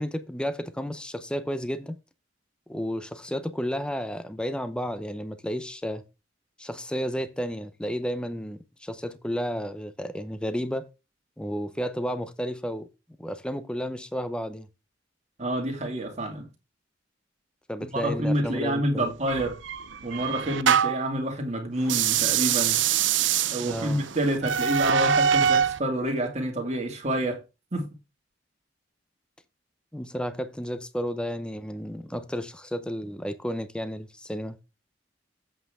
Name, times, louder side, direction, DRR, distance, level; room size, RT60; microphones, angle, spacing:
voice 1, 0.0-2.0 2.7-6.0 6.6-10.9 11.4-12.9 13.2-14.7 17.7-19.1 23.6-24.0 29.9-34.6, equal, 5° left, 0.7 m, -32 dB
voice 2, 15.4-16.5 17.9-19.6 20.0-22.8 23.5-27.4 27.7-27.9, right 1 dB, 35° right, 2.3 m, -28 dB
sound 1, 19.3-21.1 21.8-25.8, right 8 dB, 70° right, 0.6 m, -24 dB
8.0 x 8.0 x 3.6 m
head